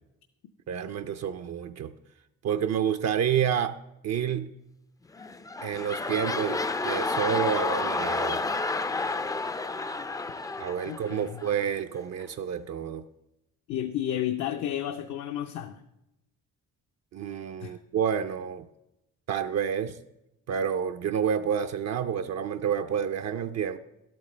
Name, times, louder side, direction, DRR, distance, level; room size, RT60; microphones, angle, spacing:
voice 1, 0.7-1.9 2.4-3.8 4.0-4.6 5.6-8.4 10.6-13.0 17.1-18.6 19.3-20.0 20.5-23.8, right 8 dB, 60° right, 8 dB, 0.5 m, -29 dB
sound 1, 5.1-11.7 12.2-12.3, left 3 dB, 10° left, 0.4 m, -30 dB
voice 2, 10.8-11.4 13.7-15.8 17.6-17.8, left 11 dB, 65° left, 6 dB, 0.6 m, -32 dB
11.5 x 8.7 x 3.2 m, 0.89 s
cardioid pair, 90°, 30 cm